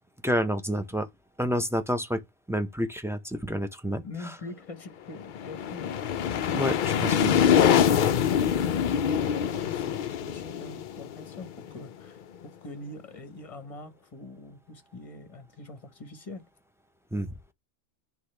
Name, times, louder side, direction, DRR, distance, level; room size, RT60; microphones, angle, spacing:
voice 1, 0.2-1.1 1.4-2.2 2.5-4.3 6.5-6.7 7.0-7.4 17.1-17.3, equal, 5° right, 0.4 m, -29 dB
voice 2, 4.0-5.9 7.0-7.1 7.7-12.2 12.6-16.4, left 2 dB, 30° left, 1.0 m, -43 dB
sound 1, 5.2-11.9, left 8 dB, 60° left, 0.6 m, -25 dB
9.6 x 3.5 x 3.3 m
omnidirectional pair, 1.2 m